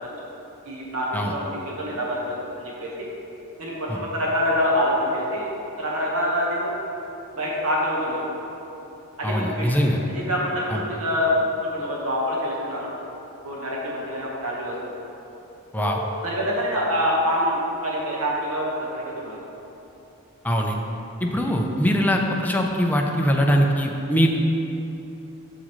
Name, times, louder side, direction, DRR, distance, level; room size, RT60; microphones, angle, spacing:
voice 1, 0.6-2.2 2.6-3.1 3.6-3.7 4.1-5.5 5.8-6.7 7.4-8.2 9.2-11.3 11.6-12.9 13.4-14.7 15.8-15.9 16.2-19.4 21.3-21.6, equal, 80° right, -4 dB, 1.4 m, -26 dB
voice 2, 9.2-10.0 10.7-10.8 15.7-16.0 20.4-20.8 21.2-24.4, equal, 10° left, 1 dB, 0.5 m, -22 dB
7.7 x 6.2 x 3.1 m, 3.0 s
head